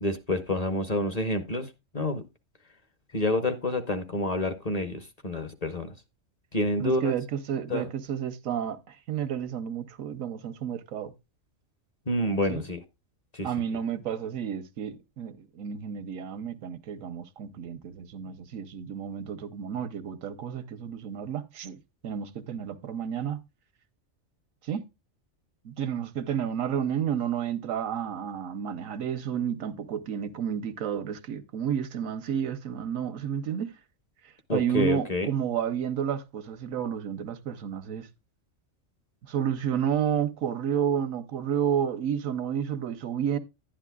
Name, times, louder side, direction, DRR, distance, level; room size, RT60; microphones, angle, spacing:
voice 1, 0.0-1.7 1.9-2.2 3.1-5.9 6.5-7.1 7.7-7.9 12.1-12.8 13.3-13.5 34.5-35.3, left 1 dB, 35° left, 0.9 m, -28 dB
voice 2, 6.8-11.1 12.5-12.6 13.4-23.4 24.6-24.8 25.6-33.8 34.2-38.1 39.2-43.4, right 8 dB, 90° right, 1.2 m, -31 dB
11.5 x 10.0 x 2.3 m
omnidirectional pair, 1.3 m